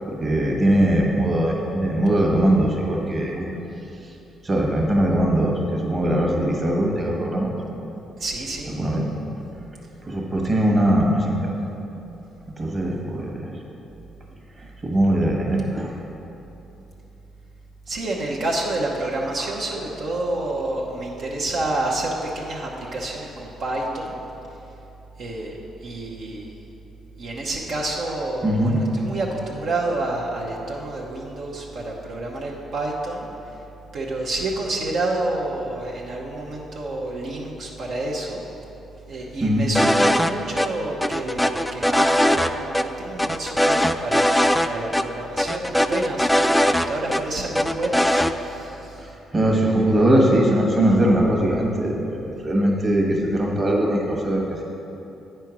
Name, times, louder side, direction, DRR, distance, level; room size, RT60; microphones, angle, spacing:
voice 1, 0.1-3.6 4.4-7.5 8.8-9.1 10.0-11.5 12.5-13.5 14.6-15.9 28.4-28.8 39.4-39.7 49.0-54.6, right 1 dB, 30° right, -1 dB, 1.3 m, -21 dB
voice 2, 8.2-8.7 17.9-24.2 25.2-26.6 27.2-33.3 33.9-38.4 39.1-49.0, right 2 dB, 65° right, -3 dB, 1.0 m, -29 dB
sound 1, 39.7-40.3 40.6-40.7 41.0-42.5 42.7-42.8 43.2-44.7 44.9-45.0 45.4-47.2 47.5-48.3, equal, 5° left, 0.3 m, -20 dB
9.0 x 4.5 x 6.0 m, 3.0 s
cardioid pair, 90°, 0 cm